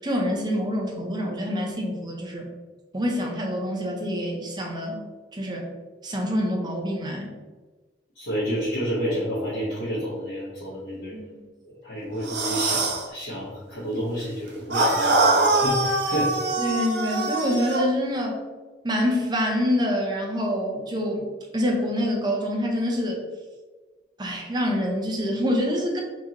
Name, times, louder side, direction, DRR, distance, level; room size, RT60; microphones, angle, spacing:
voice 1, 0.0-2.5 2.9-5.0 5.3-5.7 6.0-7.3 11.1-11.2 16.6-18.4 18.8-23.2 24.2-26.0, equal, 25° right, 0 dB, 0.7 m, -26 dB
voice 2, 8.1-11.2 11.6-16.3, equal, 80° left, -10 dB, 1.2 m, -30 dB
sound 1, 12.2-13.1 14.7-17.9, right 2 dB, 90° right, 0.7 m, -23 dB
4.6 x 2.7 x 2.9 m, 1.3 s
head